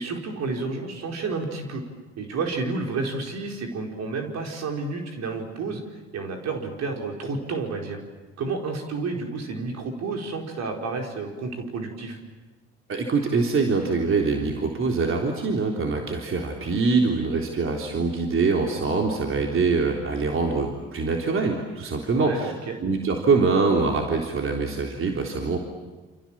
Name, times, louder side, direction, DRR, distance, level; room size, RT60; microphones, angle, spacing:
voice 1, 0.0-1.8 2.2-5.8 6.1-8.0 8.4-12.2 22.1-22.8, right 3 dB, 60° right, 2 dB, 4.9 m, -30 dB
voice 2, 12.9-22.5 22.8-25.6, right 4 dB, 40° right, 1 dB, 3.7 m, -24 dB
28.5 x 26.5 x 7.5 m, 1.2 s
hypercardioid pair, 55°, 31 cm